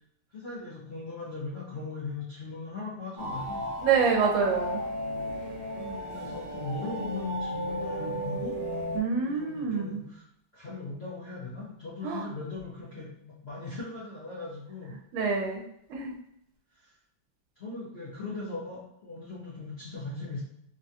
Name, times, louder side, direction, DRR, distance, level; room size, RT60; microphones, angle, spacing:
voice 1, 0.3-3.7 5.7-8.9 9.1-10.2 10.5-15.0 16.7-16.9 17.6-20.4, left 3 dB, 55° left, -8 dB, 0.7 m, -39 dB
sound 1, 3.2-9.0, equal, 40° right, 0.8 m, -34 dB
voice 2, 3.8-4.8 8.9-10.0 12.0-12.3 15.1-15.6 15.9-16.1, right 5 dB, 80° right, 1 dB, 1.4 m, -26 dB
3.6 x 2.2 x 2.7 m, 0.75 s
omnidirectional pair, 2.1 m